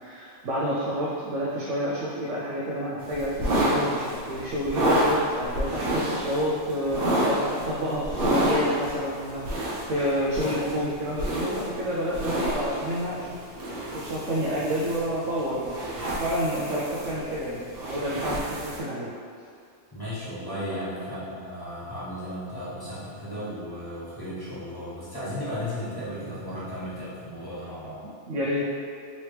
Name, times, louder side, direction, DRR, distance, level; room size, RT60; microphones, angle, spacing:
voice 1, 0.0-13.4 13.9-15.8 16.1-19.1 20.7-20.9 28.0-28.7, equal, 70° right, -7 dB, 0.9 m, -29 dB
sound 1, 3.0-18.8, right 1 dB, 50° right, 1.0 m, -29 dB
voice 2, 19.9-28.0, equal, 20° left, -12 dB, 1.0 m, -35 dB
4.0 x 3.0 x 3.2 m, 2.3 s
omnidirectional pair, 1.3 m